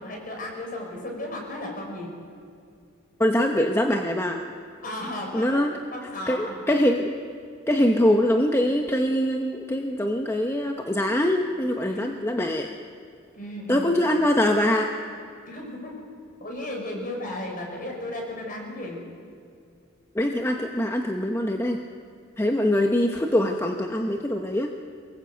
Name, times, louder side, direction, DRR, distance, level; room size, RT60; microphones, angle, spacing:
voice 1, 0.0-2.1 4.8-5.6 5.9-6.6 11.8-12.1 13.3-13.9 15.5-16.0 16.4-19.0, left 1 dB, 45° left, 1 dB, 5.5 m, -34 dB
voice 2, 3.2-4.4 5.3-5.7 6.3-7.2 7.7-12.7 13.7-14.9 20.1-21.8 22.4-24.7, left 1 dB, 15° left, 3 dB, 1.0 m, -23 dB
23.0 x 20.5 x 8.0 m, 2.4 s
head